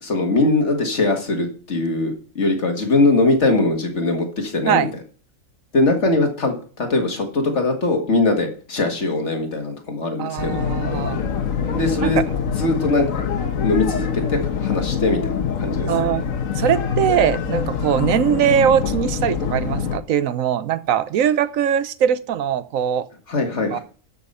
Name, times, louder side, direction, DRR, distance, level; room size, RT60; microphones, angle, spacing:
voice 1, 0.0-4.9 5.7-10.5 10.9-11.0 11.7-12.2 12.6-13.2 13.6-15.2 15.6-15.9 23.3-23.8, left 2 dB, 60° left, 4 dB, 2.1 m, -21 dB
voice 2, 10.2-11.2 12.0-12.2 15.9-16.2 16.5-23.1 23.7-23.8, right 9 dB, 80° right, 15 dB, 1.1 m, -21 dB
sound 1, 10.4-20.0, left 7 dB, 80° left, 1.4 m, -24 dB
12.5 x 5.7 x 5.5 m, 0.42 s
omnidirectional pair, 1.4 m